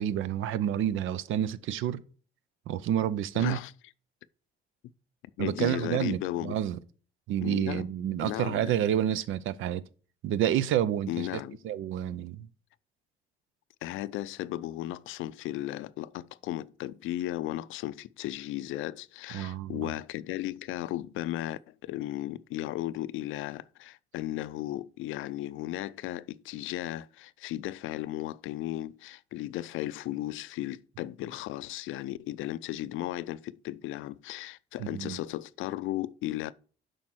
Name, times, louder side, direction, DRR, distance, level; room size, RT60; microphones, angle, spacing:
voice 1, 0.0-2.0 2.7-3.6 5.4-6.8 7.3-9.8 10.2-11.4 11.6-12.5 19.3-19.9 34.8-35.2, right 10 dB, 85° right, 0.6 m, -29 dB
voice 2, 3.3-3.7 5.4-6.5 7.4-7.9 8.2-8.7 11.1-11.6 13.8-36.5, left 15 dB, 90° left, 0.4 m, -35 dB
7.4 x 5.2 x 6.1 m
cardioid pair, 90°, 20 cm